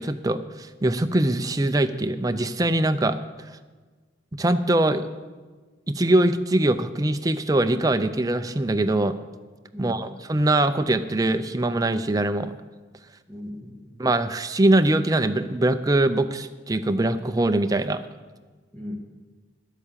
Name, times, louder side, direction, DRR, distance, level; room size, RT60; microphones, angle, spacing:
voice 1, 0.0-3.2 4.3-5.1 5.9-9.1 9.8-12.5 14.0-18.0, right 1 dB, 20° right, 9 dB, 0.5 m, -22 dB
voice 2, 9.7-10.1 13.3-14.0 18.7-19.0, left 1 dB, 5° left, 0 dB, 1.7 m, -37 dB
11.0 x 8.2 x 7.4 m, 1.4 s
head